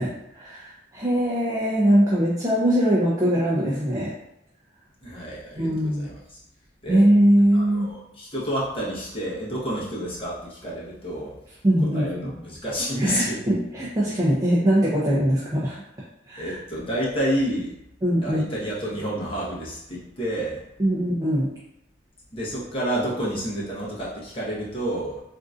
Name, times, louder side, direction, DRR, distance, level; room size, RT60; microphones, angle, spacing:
voice 1, 0.0-4.1 5.6-6.1 6.9-7.9 11.6-12.4 13.0-15.8 16.3-16.6 18.0-18.4 20.8-21.5, equal, 20° right, -7 dB, 0.5 m, -21 dB
voice 2, 5.0-6.4 6.8-7.0 7.5-11.3 11.9-13.4 16.4-17.7 18.2-20.6 22.3-25.2, equal, 30° left, -6 dB, 1.0 m, -29 dB
3.7 x 2.6 x 2.4 m, 0.80 s
head